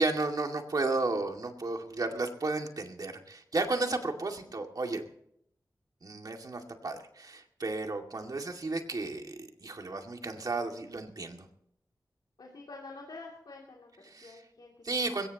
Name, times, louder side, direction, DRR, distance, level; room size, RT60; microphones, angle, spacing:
voice 1, 0.0-5.0 6.0-11.5 14.1-14.4 14.8-15.3, right 3 dB, 60° right, 3 dB, 2.2 m, -33 dB
voice 2, 12.4-14.7 15.1-15.3, left 3 dB, 85° left, -1 dB, 2.7 m, -48 dB
21.5 x 17.5 x 3.0 m, 0.71 s
wide cardioid pair, 90°, 7 cm